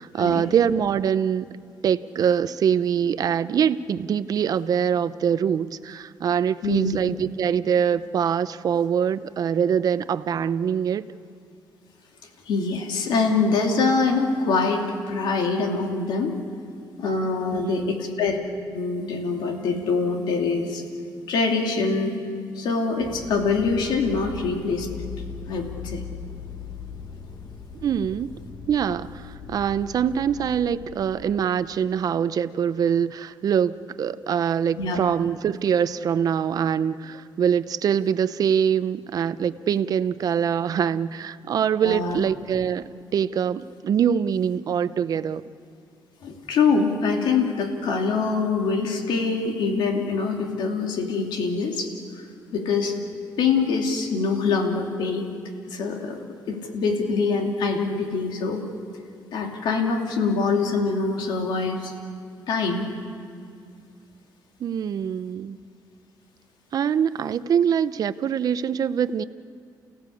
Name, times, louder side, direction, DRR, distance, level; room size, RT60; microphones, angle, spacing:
voice 1, 0.0-1.5 1.8-11.1 17.5-17.9 27.8-28.3 28.7-45.4 64.6-65.6 66.7-69.2, right 8 dB, 55° right, 14 dB, 0.7 m, -24 dB
voice 2, 6.6-7.0 12.5-16.4 17.0-18.4 18.7-20.8 21.3-22.2 22.6-25.1 25.5-26.0 34.8-35.0 41.8-42.2 46.2-51.9 52.5-52.9 53.4-55.3 55.7-56.2 56.5-58.6 59.3-61.9 62.5-62.9, left 4 dB, 85° left, 2 dB, 2.7 m, -24 dB
sound 1, 23.0-31.4, left 6 dB, 30° left, 1.3 m, -39 dB
29.5 x 16.5 x 8.5 m, 2.3 s
cardioid pair, 120°, 8 cm